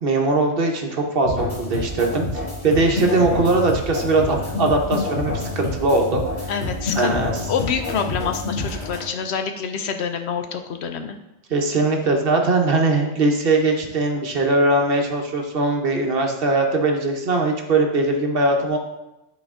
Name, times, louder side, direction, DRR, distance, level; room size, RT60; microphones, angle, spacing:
voice 1, 0.0-6.2 6.9-7.4 11.5-18.8, right 2 dB, 55° right, 2 dB, 1.0 m, -20 dB
sound 1, 1.2-9.0, left 2 dB, 40° left, 2.0 m, -28 dB
voice 2, 6.5-11.2, left 6 dB, 70° left, 7 dB, 0.8 m, -27 dB
9.4 x 4.3 x 3.6 m, 0.93 s
omnidirectional pair, 1.2 m